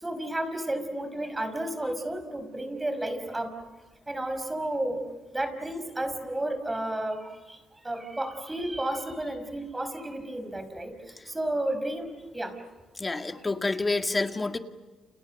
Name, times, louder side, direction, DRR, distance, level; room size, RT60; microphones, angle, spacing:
voice 1, 0.0-3.5 4.1-5.0 5.3-7.3 7.8-10.9 11.3-12.1 12.3-12.5, right 1 dB, 15° right, 8 dB, 5.3 m, -32 dB
voice 2, 13.0-14.6, left 3 dB, 25° left, 7 dB, 1.9 m, -28 dB
30.0 x 29.0 x 6.6 m, 1.2 s
cardioid pair, 90°, 0 cm